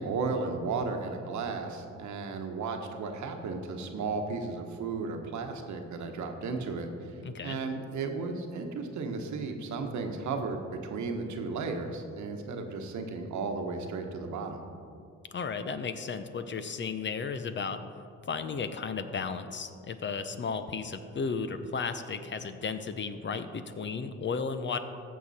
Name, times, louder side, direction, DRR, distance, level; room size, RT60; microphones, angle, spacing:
voice 1, 0.0-14.6, right 4 dB, 70° right, 5 dB, 1.2 m, -34 dB
voice 2, 7.2-7.6 15.3-17.8 18.3-24.8, left 5 dB, 40° left, 10 dB, 0.7 m, -34 dB
15.0 x 6.7 x 4.2 m, 2.5 s
cardioid pair, 90°, 30 cm